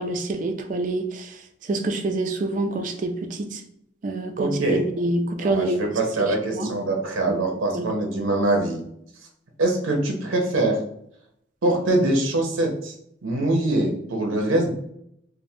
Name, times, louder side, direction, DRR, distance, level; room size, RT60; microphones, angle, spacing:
voice 1, 0.0-1.3 1.7-3.6 4.0-5.8 6.5-6.7 7.3-7.4 7.7-7.8, right 2 dB, 40° right, 6 dB, 0.3 m, -26 dB
voice 2, 4.4-4.8 5.4-8.8 9.6-10.8 11.6-12.9 13.2-14.7, right 2 dB, 90° right, 1 dB, 0.6 m, -23 dB
3.2 x 2.1 x 2.7 m, 0.71 s
head